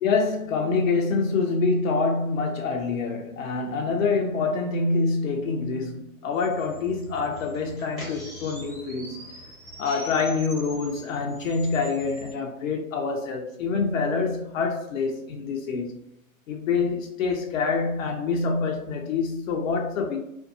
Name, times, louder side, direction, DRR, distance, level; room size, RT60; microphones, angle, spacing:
voice 1, 0.0-9.3 9.8-16.0 16.5-20.2, left 4 dB, 65° left, 0.5 m, -26 dB
sound 1, 6.3-12.3, right 1 dB, ahead, 1.3 m, -43 dB
2.5 x 2.2 x 2.5 m
hypercardioid pair, 130°, 43 cm